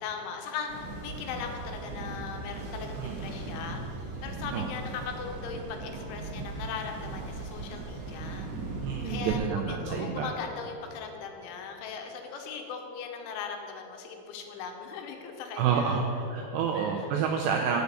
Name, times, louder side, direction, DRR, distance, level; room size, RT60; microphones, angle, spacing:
voice 1, 0.0-3.8 4.2-8.5 9.0-16.0 16.7-17.2, left 6 dB, 85° left, 4 dB, 3.2 m, -39 dB
sound 1, 0.7-9.3, right 3 dB, 60° right, 1.6 m, -38 dB
voice 2, 8.8-10.3 15.6-17.8, right 6 dB, 85° right, 1 dB, 2.4 m, -29 dB
8.0 x 6.8 x 8.2 m, 2.8 s
omnidirectional pair, 5.6 m